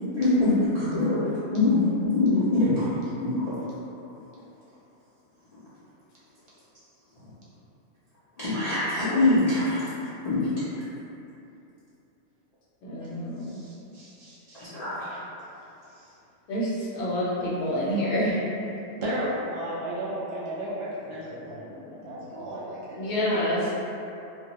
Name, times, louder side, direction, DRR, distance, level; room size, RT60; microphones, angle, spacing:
voice 1, 0.1-1.2 1.5-2.9 3.2-3.7 8.4-9.8 10.2-10.5 14.5-15.1, left 2 dB, 50° left, -14 dB, 0.5 m, -23 dB
voice 2, 12.8-13.6 16.5-18.4 21.3-21.7 22.0-22.5 23.0-23.7, equal, 70° left, -7 dB, 0.8 m, -28 dB
voice 3, 13.4-14.6 15.0-15.3 19.0-23.1, right 1 dB, 60° right, -9 dB, 0.8 m, -34 dB
2.2 x 2.1 x 2.9 m, 2.8 s
omnidirectional pair, 1.3 m